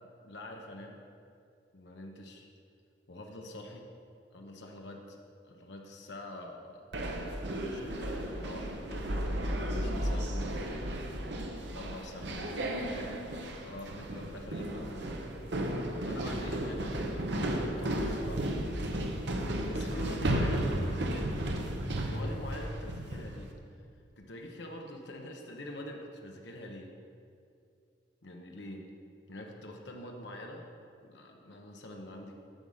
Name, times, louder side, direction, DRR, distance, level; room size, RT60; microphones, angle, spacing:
voice 1, 0.0-1.0 1.7-2.5 3.1-3.9 4.3-5.2 5.4-6.8 7.3-9.1 9.8-15.3 16.1-18.6 18.9-19.1 19.7-21.4 21.9-23.5 24.2-26.9 28.2-28.9 29.3-30.6 31.0-32.4, left 1 dB, 70° left, 1 dB, 0.9 m, -45 dB
sound 1, 6.9-23.4, right 1 dB, 65° right, 0.9 m, -34 dB
9.0 x 6.3 x 5.5 m, 2.5 s
head